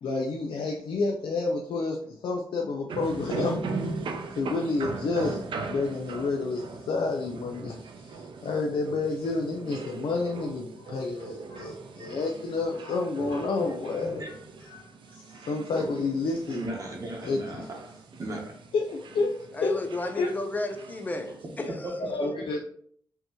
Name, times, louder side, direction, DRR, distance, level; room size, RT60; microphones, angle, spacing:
voice 1, 0.0-3.6 4.3-16.6 17.2-17.7 18.7-19.3 19.6-19.8 20.2-20.3 22.0-22.6, left 3 dB, 75° left, 0.5 m, -30 dB
sound 1, 2.9-21.7, right 4 dB, 70° right, 0.5 m, -39 dB
voice 2, 16.5-18.7 21.3-22.6, right 1 dB, 40° right, 0.9 m, -37 dB
voice 3, 19.6-21.7, left 2 dB, 20° left, 0.5 m, -32 dB
5.5 x 2.9 x 2.9 m
wide cardioid pair, 165°, 9 cm